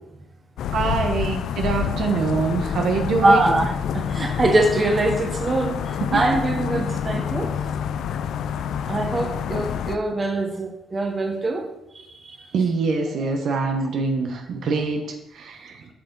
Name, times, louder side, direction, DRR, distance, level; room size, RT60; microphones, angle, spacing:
sound 1, 0.6-10.0, left 8 dB, 75° left, 0.4 m, -27 dB
voice 1, 0.7-3.4 6.1-6.2 12.5-15.0 15.3-15.8, right 4 dB, 70° right, 4 dB, 0.9 m, -24 dB
voice 2, 3.2-7.5 8.9-11.7 12.1-12.5 13.2-13.3, right 2 dB, 30° right, 4 dB, 1.1 m, -23 dB
7.8 x 5.8 x 3.9 m, 0.87 s
cardioid pair, 90°, 0 cm